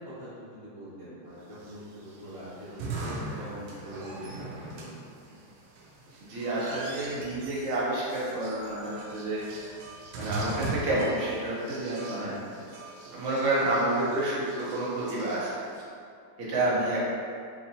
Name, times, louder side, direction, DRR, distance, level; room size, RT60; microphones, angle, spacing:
voice 1, 0.0-5.0 12.2-12.4 16.6-16.7, equal, 50° left, -14 dB, 0.3 m, -43 dB
sound 1, 1.5-15.8, right 2 dB, 75° right, 1.3 m, -40 dB
voice 2, 6.3-9.4 10.2-12.3 13.1-15.5 16.5-17.0, right 2 dB, 55° right, -7 dB, 0.9 m, -29 dB
3.9 x 2.9 x 2.7 m, 2.4 s
omnidirectional pair, 2.3 m